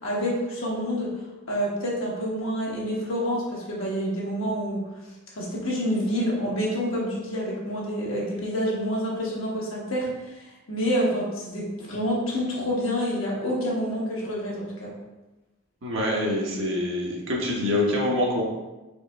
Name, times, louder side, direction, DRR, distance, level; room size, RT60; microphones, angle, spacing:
voice 1, 0.0-1.1 1.5-4.9 5.3-10.1 10.3-14.9, equal, 70° left, -4 dB, 1.3 m, -28 dB
voice 2, 15.8-18.4, left 1 dB, 70° right, -3 dB, 1.1 m, -25 dB
4.5 x 3.2 x 3.4 m, 1.1 s
head